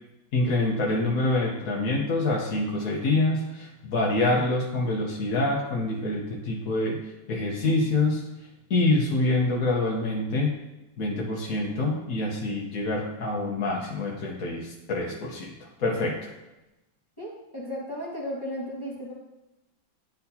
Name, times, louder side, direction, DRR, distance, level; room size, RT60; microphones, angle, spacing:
voice 1, 0.3-7.0 7.3-8.2 8.7-10.5 11.0-16.3, left 2 dB, 55° left, -3 dB, 1.2 m, -26 dB
voice 2, 17.2-19.1, equal, 15° left, -5 dB, 1.1 m, -35 dB
10.5 x 4.2 x 2.8 m, 0.97 s
omnidirectional pair, 2.2 m